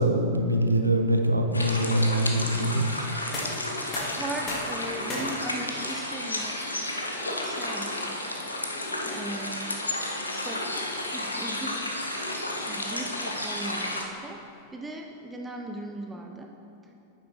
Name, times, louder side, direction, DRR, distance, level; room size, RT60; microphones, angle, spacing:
voice 1, 0.0-2.8, right 1 dB, 85° right, 5 dB, 0.6 m, -23 dB
sound 1, 1.5-14.1, left 1 dB, 80° left, 0.8 m, -32 dB
sound 2, 3.1-14.9, left 2 dB, 25° left, 1.9 m, -44 dB
voice 2, 3.8-6.6 7.2-8.5 9.0-9.8 10.4-10.6 11.1-11.8 12.7-14.4 14.7-16.5, right 2 dB, 10° right, 2 dB, 0.6 m, -38 dB
8.9 x 6.8 x 4.3 m, 2.8 s
figure-of-eight pair, 90°, 0 cm